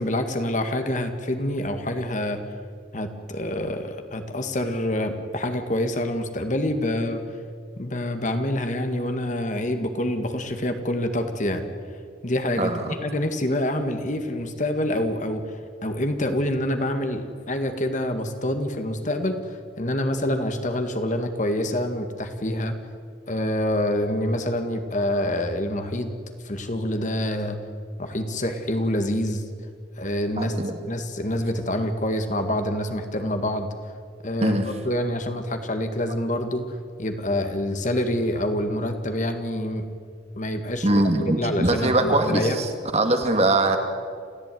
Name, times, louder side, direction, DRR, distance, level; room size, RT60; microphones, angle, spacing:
voice 1, 0.0-2.4 2.9-7.2 7.8-11.6 12.2-15.4 15.8-19.4 19.8-22.7 23.3-26.1 26.4-27.6 28.0-29.4 30.0-30.6 30.9-33.7 34.2-34.6 34.8-36.7 37.0-39.9 40.4-42.6, left 1 dB, 45° left, 6 dB, 2.0 m, -26 dB
voice 2, 12.6-13.0 30.4-30.7 34.4-34.7 40.8-42.7 42.9-43.8, right 2 dB, 35° right, 5 dB, 2.2 m, -22 dB
28.5 x 15.0 x 9.4 m, 2.1 s
head